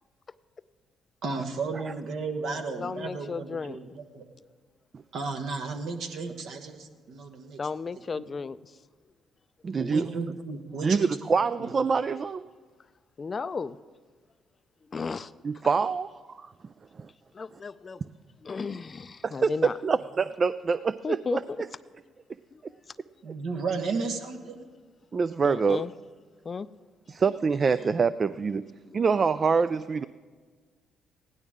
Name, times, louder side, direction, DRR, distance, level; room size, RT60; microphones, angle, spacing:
voice 1, 1.2-3.8 4.1-4.2 5.1-7.6 8.1-8.2 9.8-11.2 11.6-11.7 23.2-24.7, right 4 dB, 70° right, 6 dB, 1.2 m, -33 dB
voice 2, 2.8-3.8 7.6-8.8 13.2-13.8 14.9-15.3 17.3-18.0 18.4-19.7 21.0-21.4 22.5-22.6 25.4-25.9 26.4-26.7 28.9-29.0 29.4-29.5, left 5 dB, 40° left, 15 dB, 0.4 m, -34 dB
voice 3, 9.6-10.1 10.8-12.4 15.4-16.5 17.0-17.1 19.2-21.4 25.1-25.8 27.1-28.6 28.9-30.0, right 5 dB, 45° right, 14 dB, 0.3 m, -25 dB
16.0 x 11.0 x 3.6 m, 1.5 s
supercardioid pair, 65°, 0 cm